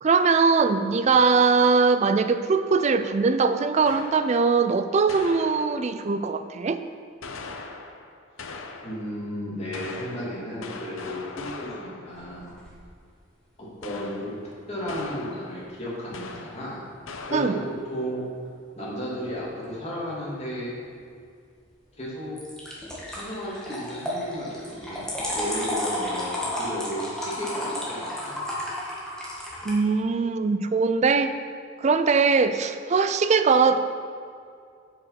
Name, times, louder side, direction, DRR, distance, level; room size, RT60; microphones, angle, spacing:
voice 1, 0.0-6.8 17.3-17.5 29.6-31.3 31.8-33.8, right 4 dB, 35° right, 10 dB, 0.4 m, -21 dB
sound 1, 3.8-4.5 5.1-6.1 7.2-9.2 9.7-12.2 13.8-14.5 14.9-15.7 16.1-16.8 17.1-17.9, left 3 dB, 75° left, 0.7 m, -40 dB
voice 2, 8.8-12.5 13.6-14.4 14.7-16.8 17.3-17.6 17.8-18.3 18.7-20.8 22.0-22.4 23.1-25.0 25.3-28.4, equal, 30° left, -6 dB, 2.6 m, -34 dB
sound 2, 12.1-12.8 22.4-29.7, left 1 dB, 5° left, 1.7 m, -32 dB
7.8 x 6.6 x 5.8 m, 2.3 s
head